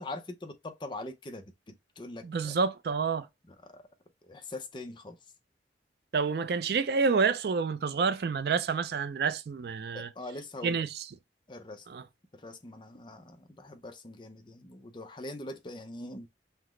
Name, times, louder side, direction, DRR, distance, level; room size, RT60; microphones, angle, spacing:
voice 1, 0.0-2.5 4.2-5.2 9.9-10.8 11.5-11.8 12.4-16.3, left 2 dB, 25° left, 0.6 m, -42 dB
voice 2, 2.2-3.3 6.1-10.1 10.6-11.1 11.9-12.0, right 5 dB, 60° right, 0.4 m, -28 dB
5.6 x 2.0 x 3.1 m
head